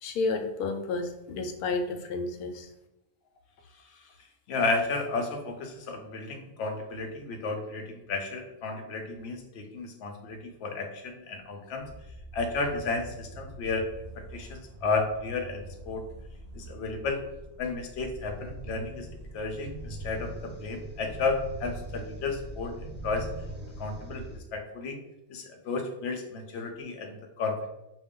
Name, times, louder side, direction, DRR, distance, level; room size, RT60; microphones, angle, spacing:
voice 1, 0.0-2.7, left 3 dB, 90° left, 6 dB, 1.1 m, -31 dB
voice 2, 4.5-11.9 12.3-13.9 14.1-16.0 16.5-17.2 17.6-19.1 19.3-23.3 23.8-25.0 25.3-27.7, left 3 dB, 55° left, 3 dB, 0.8 m, -33 dB
sound 1, 11.8-24.4, right 1 dB, 10° left, 0.9 m, -42 dB
5.2 x 2.3 x 3.6 m, 0.92 s
omnidirectional pair, 1.6 m